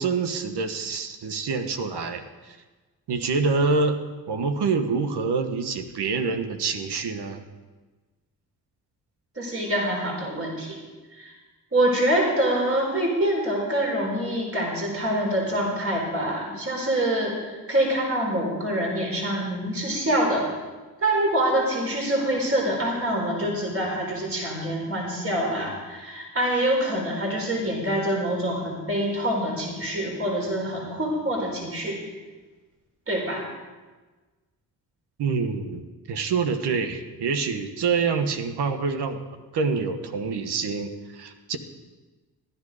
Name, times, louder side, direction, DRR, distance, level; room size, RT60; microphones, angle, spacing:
voice 1, 0.0-2.6 3.1-4.0 4.3-7.4 35.2-39.2 39.5-41.6, right 4 dB, 75° right, 8 dB, 1.4 m, -26 dB
voice 2, 9.4-10.8 11.1-11.3 11.7-20.5 21.0-32.0 33.1-33.4, right 1 dB, 35° right, -1 dB, 4.1 m, -25 dB
15.5 x 11.5 x 5.0 m, 1.3 s
cardioid pair, 65°, 40 cm